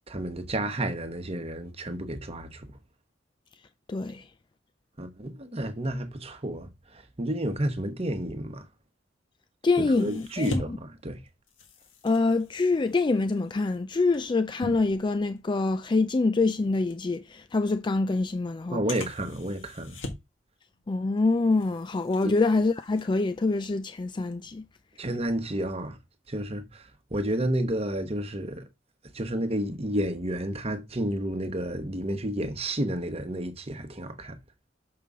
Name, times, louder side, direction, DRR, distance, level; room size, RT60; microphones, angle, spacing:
voice 1, 0.1-2.7 5.0-8.7 9.8-11.2 18.7-20.0 22.2-22.3 25.0-26.0 26.3-28.6 29.1-34.4, right 1 dB, 30° right, 1.2 m, -31 dB
voice 2, 3.9-4.2 9.6-10.8 12.0-18.8 20.9-24.7, left 3 dB, 25° left, 0.4 m, -25 dB
sound 1, 9.9-15.7 16.1-16.3 16.9-17.0 17.9-18.0 18.9-20.4 20.7-21.2 21.5-23.7 24.1-24.3, left 1 dB, 85° left, 1.9 m, -41 dB
6.8 x 5.7 x 3.6 m
head